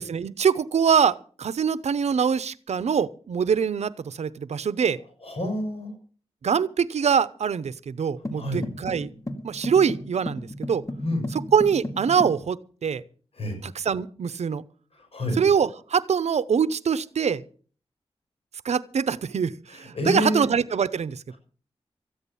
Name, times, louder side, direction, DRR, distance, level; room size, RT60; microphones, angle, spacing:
voice 1, 0.0-5.0 6.4-9.1 9.4-10.8 11.3-13.0 13.6-14.6 15.3-17.4 18.6-21.3, right 7 dB, 85° right, 17 dB, 0.7 m, -24 dB
voice 2, 5.2-5.9 8.3-8.6 11.0-11.2 13.4-13.5 15.1-15.4 19.9-20.5, left 1 dB, 60° left, 5 dB, 6.6 m, -27 dB
sound 1, 8.2-12.4, left 1 dB, 30° left, 2.1 m, -35 dB
14.5 x 10.0 x 7.0 m, 0.42 s
wide cardioid pair, 85°, 11 cm